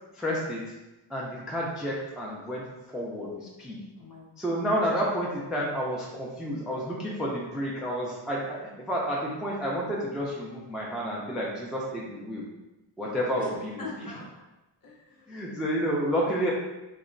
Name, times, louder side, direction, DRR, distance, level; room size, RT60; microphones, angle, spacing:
voice 1, 0.1-0.7 1.1-3.8 4.4-12.5 13.0-14.1 15.3-16.5, equal, ahead, -4 dB, 0.3 m, -30 dB
voice 2, 4.0-4.8 13.4-14.4 14.8-15.4 16.0-16.5, left 2 dB, 45° left, -2 dB, 0.7 m, -44 dB
2.8 x 2.1 x 2.4 m, 0.99 s
cardioid pair, 100°, 49 cm